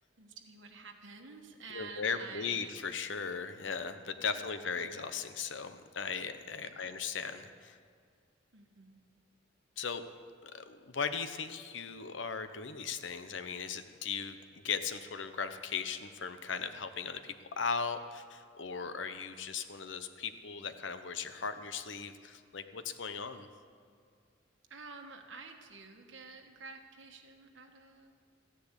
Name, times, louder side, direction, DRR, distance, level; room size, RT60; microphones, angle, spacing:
voice 1, 0.2-2.7 4.2-5.0 6.6-6.9 8.5-9.0 24.7-28.2, right 4 dB, 75° right, 2 dB, 1.3 m, -50 dB
voice 2, 1.7-7.8 9.8-10.0 10.4-23.5, left 5 dB, 75° left, 10 dB, 0.9 m, -38 dB
14.0 x 10.5 x 8.2 m, 2.1 s
head